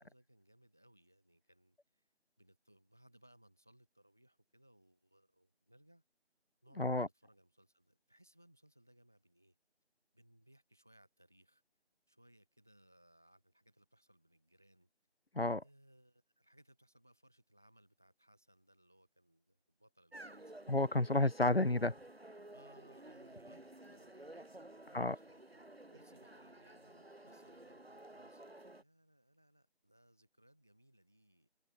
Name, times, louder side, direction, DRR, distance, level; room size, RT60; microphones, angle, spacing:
voice 1, 0.0-2.1 2.4-6.0 6.6-9.6 10.1-11.6 12.1-14.9 15.6-20.7 22.5-31.5, right 1 dB, 5° left, 2.5 m, -67 dB
voice 2, 6.8-7.1 15.3-15.6 20.7-21.9 24.9-25.2, left 2 dB, 60° left, 2.1 m, -31 dB
sound 1, 20.1-28.8, right 1 dB, 65° right, 5.1 m, -54 dB
figure-of-eight pair, 175°, 33 cm